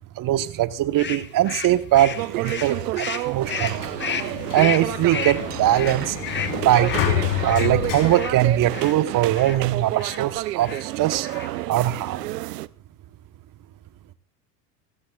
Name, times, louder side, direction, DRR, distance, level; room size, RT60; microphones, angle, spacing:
voice 1, 0.2-3.9 4.5-6.2 6.6-6.9 7.4-11.3 11.7-12.2, right 13 dB, 40° right, 12 dB, 1.2 m, -21 dB
sound 1, 1.0-9.0 9.3-9.6 10.0-10.2 10.6-10.9 11.2-11.7, left 7 dB, 25° left, 1.2 m, -33 dB
sound 2, 2.1-12.7, right 16 dB, 75° right, 0.7 m, -30 dB
Sliding door, 3.5-9.2, left 11 dB, 60° left, 4.0 m, -29 dB
27.5 x 14.0 x 2.4 m, 0.34 s
hypercardioid pair, 80°, 48 cm